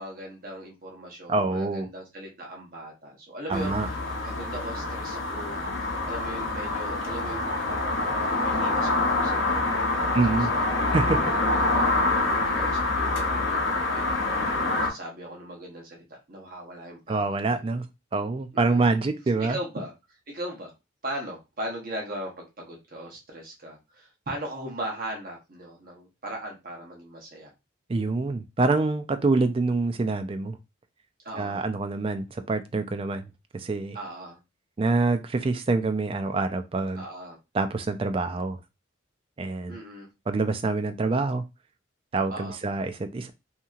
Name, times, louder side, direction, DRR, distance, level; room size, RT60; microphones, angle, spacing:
voice 1, 0.0-3.7 4.2-5.6 6.1-7.5 8.4-10.4 10.6-12.0 12.5-14.3 14.6-17.4 18.5-19.0 19.4-19.9 20.3-20.7 21.0-27.5 31.2-31.6 33.9-34.4 36.9-37.4 39.7-40.1 42.3-42.6, right 1 dB, 45° right, 0 dB, 0.9 m, -38 dB
voice 2, 1.3-1.9 3.5-3.9 10.1-10.5 10.9-11.2 17.1-17.8 18.1-19.6 27.9-30.6 31.4-33.2 33.5-34.0 34.8-37.0 37.5-38.6 39.4-39.8 40.3-41.4 42.1-43.3, right 3 dB, 30° right, 8 dB, 0.3 m, -26 dB
sound 1, 3.5-14.9, left 2 dB, 70° left, 0.8 m, -26 dB
2.9 x 2.7 x 2.4 m, 0.24 s
head